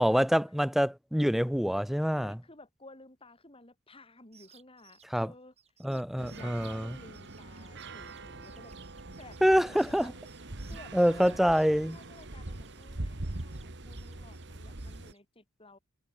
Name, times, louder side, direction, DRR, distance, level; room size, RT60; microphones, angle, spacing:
voice 1, 0.0-2.4 5.1-5.3 5.8-6.9 9.4-10.1 10.9-12.0, equal, ahead, 0.5 m, -26 dB
voice 2, 2.0-5.5 5.9-6.0 6.3-8.7 9.2-10.2 10.7-11.4 11.9-15.8, left 2 dB, 25° left, 3.4 m, -53 dB
sound 1, 4.2-13.0 13.2-15.2, right 8 dB, 30° right, 7.3 m, -61 dB
sound 2, 6.2-15.1, right 2 dB, 50° right, 1.7 m, -42 dB
head